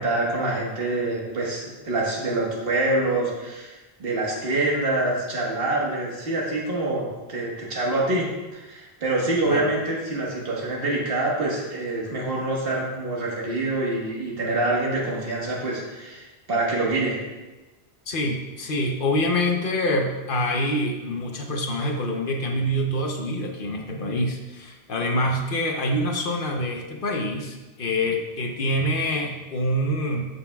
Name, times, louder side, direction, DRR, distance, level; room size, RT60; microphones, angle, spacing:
voice 1, 0.0-17.2, right 2 dB, 60° right, -3 dB, 1.6 m, -26 dB
voice 2, 18.1-30.3, left 1 dB, 55° left, 2 dB, 0.9 m, -26 dB
13.0 x 5.4 x 2.3 m, 1.1 s
omnidirectional pair, 1.1 m